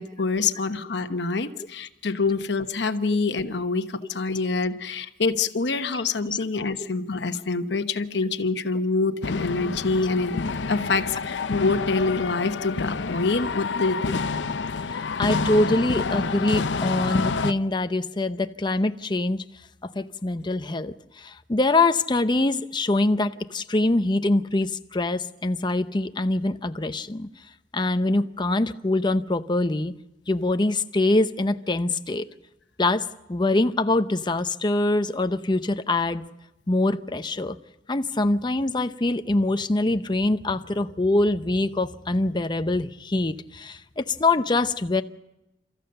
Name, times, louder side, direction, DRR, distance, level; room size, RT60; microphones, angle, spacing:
voice 1, 0.0-10.4 10.7-14.3, left 3 dB, 70° left, 1.1 m, -26 dB
sound 1, 9.2-17.5, left 4 dB, 90° left, 0.6 m, -28 dB
voice 2, 14.9-19.4 19.8-27.3 27.7-29.9 30.3-32.3 32.8-36.3 36.7-37.6 37.9-45.0, left 2 dB, 25° left, 0.7 m, -24 dB
29.5 x 14.0 x 6.8 m
head